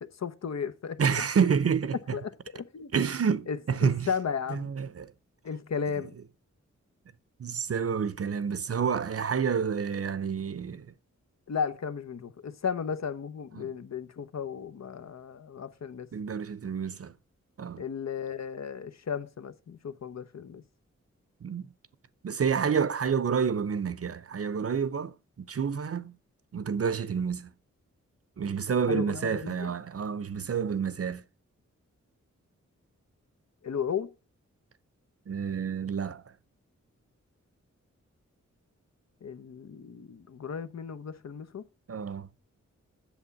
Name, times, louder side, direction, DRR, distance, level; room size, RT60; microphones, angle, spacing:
voice 1, 0.0-1.2 2.1-2.9 3.5-4.7 5.4-6.2 11.5-16.1 17.8-20.6 28.9-29.7 33.6-34.1 39.2-41.6, left 6 dB, 65° left, 0.9 m, -35 dB
voice 2, 1.0-2.2 2.9-4.1 4.5-5.1 7.4-10.9 13.5-13.7 16.1-17.1 17.6-17.8 21.4-21.7 22.2-26.1 26.5-27.5 28.4-31.2 35.3-36.3 41.9-42.3, right 6 dB, 55° right, 0.7 m, -29 dB
8.1 x 7.1 x 5.3 m
cardioid pair, 70°, 29 cm